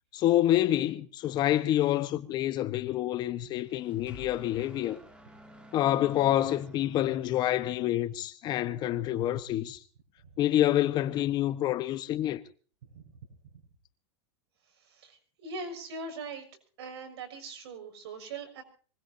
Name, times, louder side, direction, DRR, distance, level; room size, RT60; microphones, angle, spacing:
voice 1, 0.1-5.0 5.7-9.8 10.4-12.4, left 13 dB, 30° left, 1.1 m, -27 dB
sound 1, 3.4-8.0, right 1 dB, 5° right, 2.4 m, -54 dB
voice 2, 14.8-16.4 16.8-18.6, right 3 dB, 75° right, 6.3 m, -41 dB
24.5 x 20.0 x 2.7 m
supercardioid pair, 150°, 14 cm